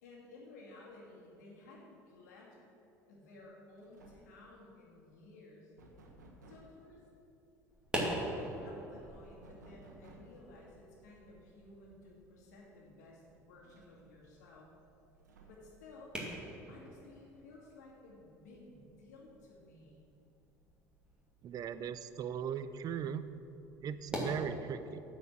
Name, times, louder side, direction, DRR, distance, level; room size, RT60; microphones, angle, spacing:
voice 1, 0.0-2.6 3.1-5.7 6.5-7.0 8.4-14.7 15.4-16.1 16.7-20.1, left 2 dB, 75° left, -3 dB, 2.2 m, -55 dB
sound 1, 3.3-3.5 3.8-4.4 5.8-6.8 9.4-10.5 12.0-12.1 12.5-12.6 13.6-14.3 15.2-15.8, right 2 dB, 85° right, 1.1 m, -58 dB
sound 2, 7.7-24.4, equal, 10° right, 2.4 m, -45 dB
voice 2, 21.4-23.3 23.8-25.0, right 8 dB, 45° right, 13 dB, 0.5 m, -38 dB
9.4 x 4.7 x 7.4 m, 2.9 s
hypercardioid pair, 65°, 9 cm